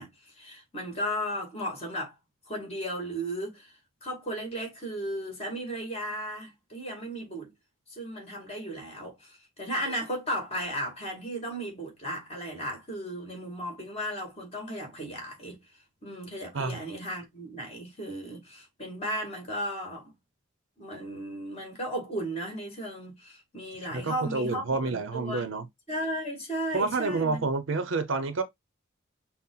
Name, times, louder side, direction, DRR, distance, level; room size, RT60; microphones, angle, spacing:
voice 1, 0.0-2.1 2.5-3.7 4.0-7.5 7.9-15.6 16.0-20.1 20.8-25.5 25.9-27.4, equal, 30° left, 2.1 m, -35 dB
voice 2, 23.9-25.7 26.7-28.4, right 3 dB, 65° right, 0.7 m, -29 dB
5.8 x 2.1 x 3.8 m
head